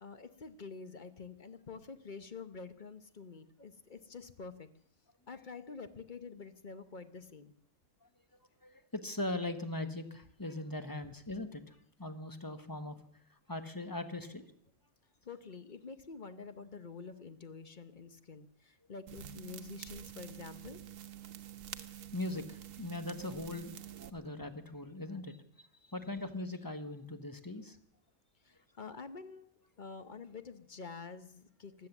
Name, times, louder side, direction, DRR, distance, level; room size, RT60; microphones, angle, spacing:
voice 1, 0.0-4.7 5.3-7.5 15.2-20.8 25.8-25.9 28.4-29.5 29.8-31.9, left 4 dB, 40° left, 11 dB, 1.0 m, -48 dB
voice 2, 8.6-13.0 13.3-14.4 22.1-23.7 24.1-27.8, left 2 dB, 15° left, 9 dB, 1.1 m, -40 dB
sound 1, 19.1-24.1, right 10 dB, 65° right, 1.3 m, -48 dB
16.0 x 12.5 x 7.2 m, 0.66 s
omnidirectional pair, 1.5 m